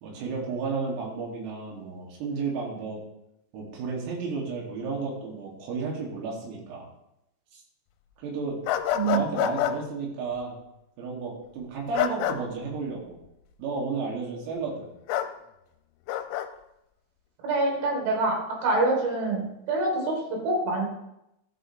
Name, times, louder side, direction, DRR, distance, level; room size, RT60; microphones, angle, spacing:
voice 1, 0.0-3.0 3.5-6.9 7.5-7.6 8.2-8.6 9.0-10.6 11.0-13.2 13.6-14.9, right 4 dB, 90° right, -3 dB, 5.4 m, -32 dB
sound 1, 8.7-9.8 11.9-12.4 15.1-15.3 16.1-16.5, left 11 dB, 85° left, 3.1 m, -27 dB
voice 2, 8.9-9.3 17.4-18.4 18.6-20.9, right 2 dB, 65° right, -1 dB, 5.8 m, -25 dB
15.0 x 11.0 x 3.4 m, 0.84 s
omnidirectional pair, 5.9 m